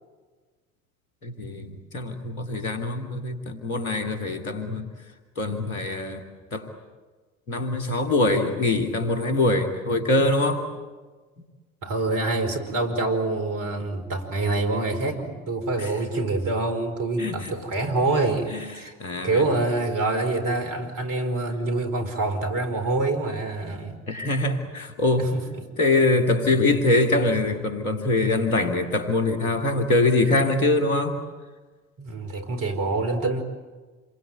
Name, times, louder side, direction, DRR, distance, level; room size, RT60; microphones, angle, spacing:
voice 1, 1.2-4.9 5.4-6.2 6.5-6.7 7.5-10.7 15.8-15.9 17.2-17.5 18.5-18.7 19.0-19.5 24.1-25.3 25.8-31.2, left 2 dB, 75° left, 5 dB, 3.1 m, -23 dB
voice 2, 11.8-19.0 19.2-24.0 25.2-25.6 32.0-33.4, right 2 dB, 50° right, 7 dB, 4.9 m, -26 dB
28.5 x 23.0 x 9.2 m, 1.3 s
figure-of-eight pair, 60°, 42 cm